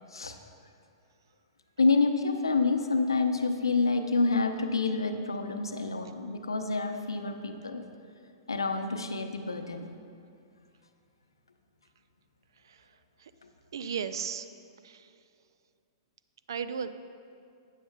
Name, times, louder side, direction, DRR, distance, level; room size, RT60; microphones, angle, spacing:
voice 1, 1.8-7.8 8.5-9.8, left 3 dB, 80° left, 6 dB, 0.6 m, -28 dB
voice 2, 13.7-14.5 14.8-15.0 16.5-16.9, right 7 dB, 65° right, 12 dB, 0.4 m, -34 dB
12.5 x 9.1 x 2.3 m, 2.4 s
figure-of-eight pair, 110°, 2 cm